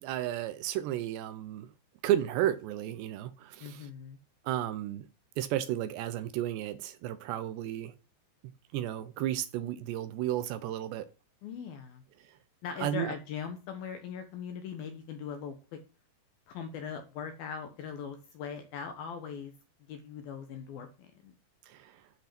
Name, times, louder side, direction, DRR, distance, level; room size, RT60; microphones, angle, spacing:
voice 1, 0.0-1.7 2.0-3.9 4.4-5.1 5.4-7.9 8.7-11.1 12.2-12.4 12.8-13.2 21.7-22.0, right 12 dB, 80° right, 2.7 m, -33 dB
voice 2, 3.6-4.2 11.4-12.0 12.6-15.6 16.5-19.5 19.9-21.3, left 7 dB, 70° left, 2.4 m, -40 dB
10.5 x 6.1 x 5.9 m
omnidirectional pair, 5.4 m